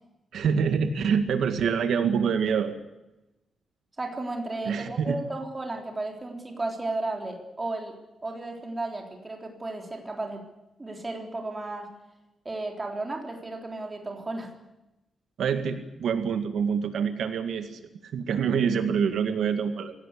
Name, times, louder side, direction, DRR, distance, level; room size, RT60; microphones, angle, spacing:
voice 1, 0.3-2.8 4.7-5.1 15.4-19.9, right 6 dB, 75° right, 8 dB, 1.8 m, -26 dB
voice 2, 4.0-8.0 8.2-10.4 10.8-11.9 12.5-14.5, right 2 dB, 15° right, 2 dB, 3.8 m, -34 dB
26.0 x 17.5 x 8.4 m, 0.98 s
wide cardioid pair, 180°, 0 cm